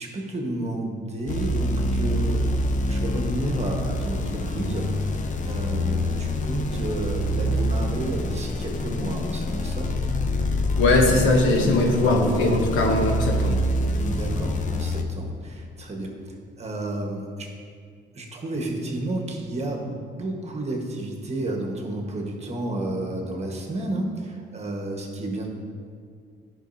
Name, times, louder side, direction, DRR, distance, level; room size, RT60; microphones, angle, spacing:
voice 1, 0.0-2.5 2.8-5.2 5.4-9.9 11.6-11.8 14.0-17.5 18.1-25.5, right 1 dB, 35° right, 1 dB, 1.3 m, -31 dB
sound 1, 1.3-15.0, left 1 dB, 40° left, 0.6 m, -26 dB
voice 2, 10.8-13.6, left 2 dB, 85° left, 2 dB, 1.0 m, -20 dB
11.0 x 5.1 x 2.7 m, 2.1 s
cardioid pair, 90°, 20 cm